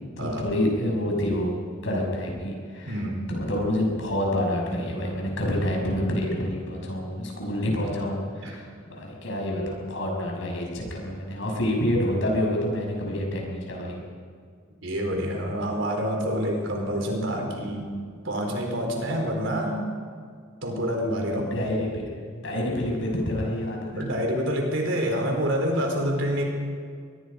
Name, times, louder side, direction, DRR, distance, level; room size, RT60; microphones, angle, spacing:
voice 1, 0.2-1.5 1.8-3.0 3.3-14.0 21.5-22.1 22.3-24.2, left 1 dB, 70° left, 0 dB, 6.6 m, -27 dB
voice 2, 2.9-3.2 8.4-8.6 14.8-17.9 18.2-19.9 20.6-21.5 24.0-26.4, equal, 70° right, 2 dB, 4.6 m, -27 dB
24.0 x 20.0 x 5.4 m, 2.1 s
head